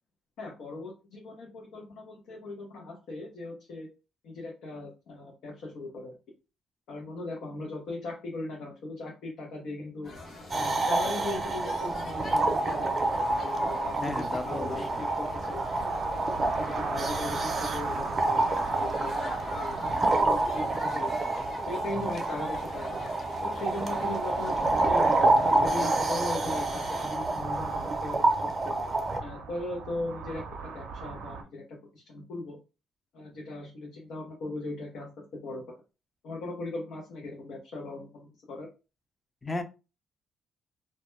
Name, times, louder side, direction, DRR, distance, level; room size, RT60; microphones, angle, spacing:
voice 1, 0.4-3.9 4.2-6.2 6.9-10.1 10.5-15.6 16.6-19.8 20.2-21.1 21.6-23.0 23.4-25.1 25.4-28.8 29.2-32.6 33.1-35.6 36.2-38.7, left 2 dB, 75° left, 0.6 m, -38 dB
sound 1, 10.0-27.1, left 2 dB, 50° left, 0.9 m, -44 dB
sound 2, 10.5-29.2, right 2 dB, 35° right, 0.5 m, -28 dB
sound 3, 11.7-31.4, right 5 dB, 85° right, 0.5 m, -43 dB
voice 2, 14.0-15.0 39.4-39.6, left 2 dB, 20° left, 0.5 m, -34 dB
2.1 x 2.1 x 3.0 m
cardioid pair, 90°, 0 cm